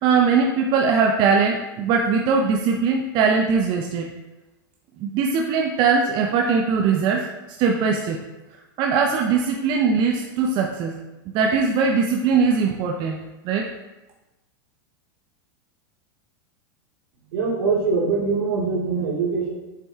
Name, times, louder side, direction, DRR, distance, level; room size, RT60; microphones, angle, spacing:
voice 1, 0.0-4.1 5.0-8.2 8.8-11.0 11.3-13.7, right 5 dB, 45° right, 2 dB, 0.6 m, -21 dB
voice 2, 17.3-19.5, right 4 dB, 75° right, -3 dB, 2.4 m, -23 dB
7.5 x 5.4 x 3.5 m, 1.1 s
supercardioid pair, 130°, 11 cm